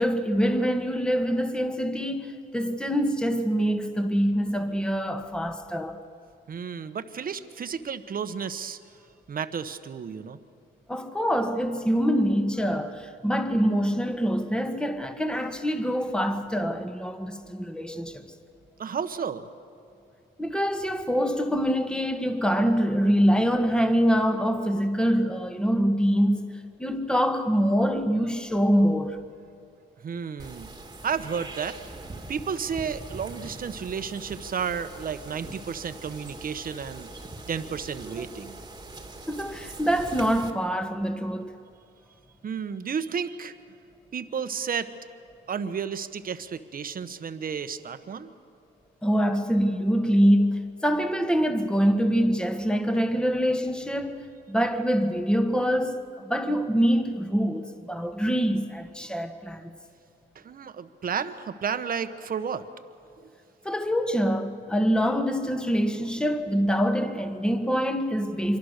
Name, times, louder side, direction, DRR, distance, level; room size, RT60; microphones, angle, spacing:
voice 1, 0.0-6.0 10.9-18.3 20.4-26.5 26.8-29.2 39.3-41.5 49.0-54.2 54.5-59.7 63.7-68.6, equal, 5° left, 1.8 m, -25 dB
voice 2, 6.5-8.8 9.3-10.4 18.8-19.5 30.0-30.7 31.0-31.8 32.3-37.1 37.5-38.6 42.4-43.5 44.1-44.9 45.5-48.3 60.3-62.6, right 6 dB, 45° right, 1.3 m, -32 dB
sound 1, 30.4-40.5, right 2 dB, 20° right, 2.1 m, -42 dB
26.0 x 24.0 x 6.7 m
cardioid pair, 90°, 20 cm